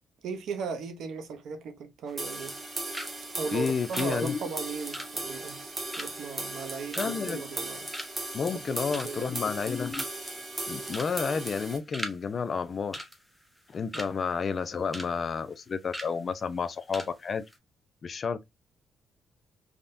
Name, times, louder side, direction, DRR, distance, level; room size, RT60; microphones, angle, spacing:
voice 1, 0.2-2.6 3.3-7.8 8.9-9.3 13.9-14.0, right 5 dB, 80° right, 0.6 m, -37 dB
sound 1, 2.1-2.7 2.9-3.2 3.4-7.6 7.9-8.3 8.7-9.3 9.6-9.7 9.9-10.3 10.9-11.2 11.4-12.2 12.4-12.6 12.9-14.1 14.5-15.1 15.4-15.5 15.9-16.1 16.6-16.7 16.9-17.1 17.4-17.6, equal, ahead, 0.7 m, -40 dB
sound 2, 2.2-11.8, right 2 dB, 25° right, 0.9 m, -37 dB
voice 2, 3.5-4.4 7.0-7.4 8.3-10.0 10.7-13.1 13.7-17.4 18.0-18.4, left 5 dB, 40° left, 0.4 m, -31 dB
3.5 x 2.2 x 2.5 m
cardioid pair, 120°, 0 cm